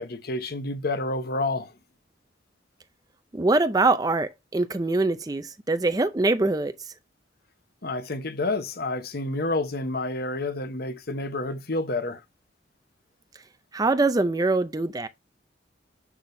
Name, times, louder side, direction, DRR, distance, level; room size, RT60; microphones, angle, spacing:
voice 1, 0.0-1.7 7.8-12.2, left 2 dB, 50° left, 1.0 m, -29 dB
voice 2, 3.3-6.7 13.7-15.1, right 2 dB, 20° right, 0.5 m, -23 dB
7.0 x 6.1 x 2.7 m
head